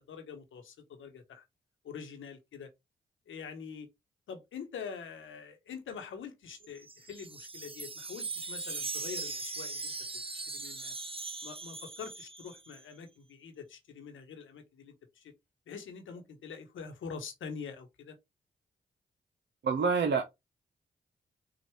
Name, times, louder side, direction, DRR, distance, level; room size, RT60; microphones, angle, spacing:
voice 1, 0.0-1.4 1.8-2.7 3.3-3.9 4.3-9.9 10.3-10.9 11.4-15.3 15.7-18.2, left 6 dB, 80° left, 1.1 m, -45 dB
Wind chime, 6.6-12.8, right 3 dB, 25° right, 0.7 m, -40 dB
voice 2, 19.6-20.2, right 5 dB, 65° right, 0.8 m, -26 dB
4.9 x 2.5 x 3.1 m
supercardioid pair, 40°, 20 cm